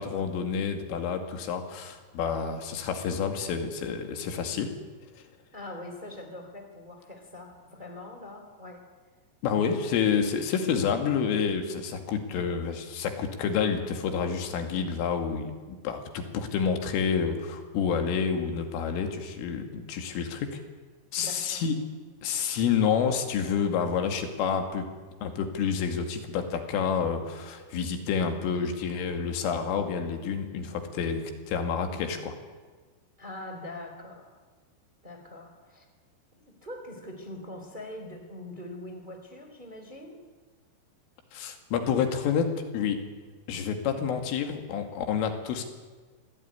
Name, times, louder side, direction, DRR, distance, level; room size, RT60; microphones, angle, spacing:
voice 1, 0.0-4.7 9.4-20.5 21.1-21.8 22.2-24.9 25.2-32.3 41.3-43.0 43.5-45.7, left 6 dB, 85° left, 5 dB, 4.9 m, -29 dB
voice 2, 5.5-8.8 21.2-21.7 33.2-34.4 35.0-35.8 36.3-40.2, left 1 dB, 10° right, 4 dB, 3.0 m, -43 dB
25.5 x 18.5 x 9.8 m, 1.4 s
omnidirectional pair, 5.6 m